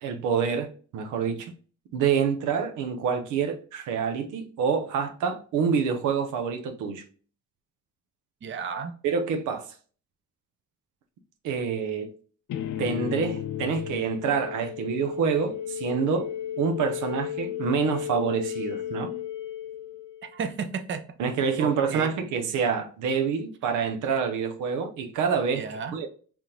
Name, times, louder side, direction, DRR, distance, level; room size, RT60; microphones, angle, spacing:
voice 1, 0.0-1.5 1.9-7.0 9.0-9.7 11.4-12.1 12.8-16.3 16.6-19.1 21.2-25.6 25.9-26.1, right 6 dB, 85° right, 0.7 m, -27 dB
voice 2, 8.4-8.9 20.3-21.0 21.6-22.1 25.6-25.9, right 6 dB, 40° right, 0.7 m, -32 dB
sound 1, 12.5-20.4, left 10 dB, 75° left, 0.7 m, -34 dB
3.5 x 3.0 x 3.7 m
cardioid pair, 90°, 30 cm